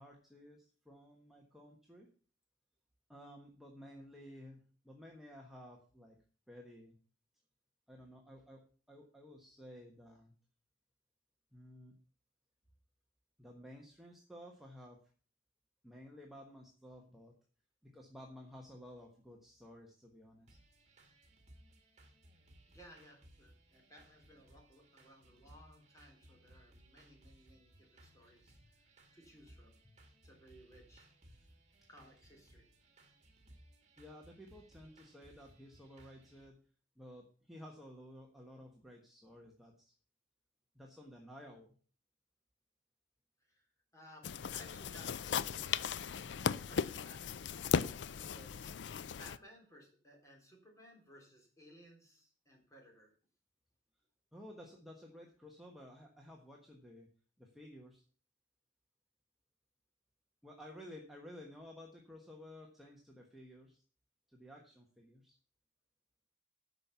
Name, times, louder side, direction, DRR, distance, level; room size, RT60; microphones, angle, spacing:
voice 1, 0.0-2.1 3.1-6.2 6.5-6.9 7.9-8.6 8.9-10.3 11.5-11.9 13.4-15.0 15.8-17.3 17.8-20.6 28.6-28.7 29.8-30.0 31.8-31.9 34.0-36.6 37.0-39.9 40.7-41.7 54.3-57.1 57.4-58.0 60.4-63.8 64.3-65.3, equal, ahead, -1 dB, 1.3 m, -54 dB
sound 1, 20.5-36.5, right 1 dB, 40° right, 2.2 m, -63 dB
voice 2, 22.7-29.8 30.2-31.1 31.9-32.7 43.4-47.7 48.2-48.7 49.2-53.1, equal, 20° left, 1 dB, 3.6 m, -60 dB
sound 2, 44.2-49.4, left 7 dB, 80° left, 0.4 m, -37 dB
9.8 x 6.0 x 6.9 m, 0.41 s
head